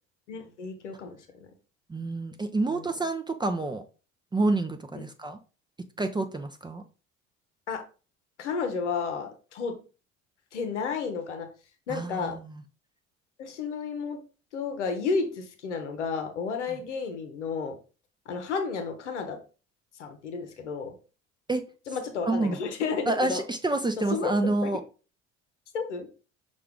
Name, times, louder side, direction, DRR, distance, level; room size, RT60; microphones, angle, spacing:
voice 1, 0.3-1.2 2.7-2.9 4.9-5.1 7.7-7.8 8.4-9.7 10.5-11.5 11.9-12.4 13.4-14.2 14.5-17.7 18.3-19.4 20.0-20.9 21.9-23.4 24.0-24.7 25.7-26.1, left 5 dB, 90° left, 6 dB, 0.7 m, -32 dB
voice 2, 1.9-3.8 4.3-5.4 6.0-6.8 11.9-12.4 16.7-16.8 21.5-21.6 22.2-22.6 23.1-24.8, right 2 dB, 15° right, 5 dB, 0.5 m, -28 dB
5.6 x 2.5 x 3.5 m, 0.35 s
hypercardioid pair, 60°, 34 cm